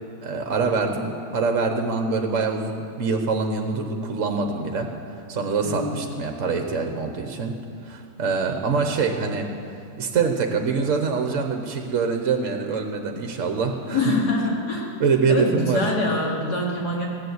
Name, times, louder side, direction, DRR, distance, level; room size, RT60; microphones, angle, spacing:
voice 1, 0.2-4.9 5.3-7.6 7.8-9.5 10.0-14.0 15.0-15.8, right 4 dB, 55° right, 4 dB, 1.3 m, -24 dB
voice 2, 5.6-6.2 13.9-14.9 15.3-17.1, left 2 dB, 80° left, -2 dB, 2.9 m, -25 dB
15.5 x 9.8 x 8.0 m, 2.5 s
omnidirectional pair, 1.7 m